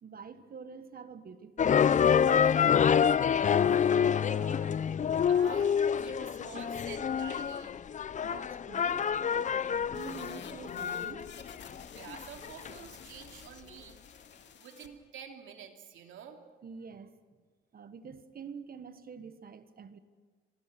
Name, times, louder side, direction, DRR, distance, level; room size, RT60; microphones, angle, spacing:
voice 1, 0.0-2.4 8.2-11.4 16.6-17.2 17.7-20.0, right 6 dB, 50° right, 11 dB, 1.5 m, -47 dB
sound 1, 1.6-12.8, left 7 dB, 40° left, 0.6 m, -27 dB
voice 2, 3.6-4.8 5.3-7.8 11.9-14.0 14.6-16.4, right 8 dB, 75° right, 4 dB, 2.9 m, -49 dB
sound 2, 9.9-14.9, left 7 dB, 65° left, 2.5 m, -51 dB
26.5 x 22.0 x 6.1 m, 1.5 s
cardioid pair, 90°, 20 cm